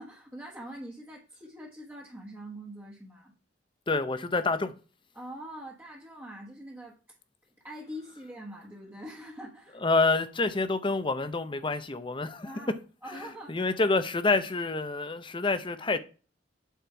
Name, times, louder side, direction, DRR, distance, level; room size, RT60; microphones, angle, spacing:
voice 1, 0.0-3.3 5.1-7.0 7.6-9.8 12.4-12.8 13.0-13.8, equal, 10° right, 1.3 m, -44 dB
voice 2, 3.9-4.7 9.8-12.5 13.5-16.0, left 3 dB, 25° left, 0.7 m, -27 dB
8.1 x 4.4 x 4.5 m
head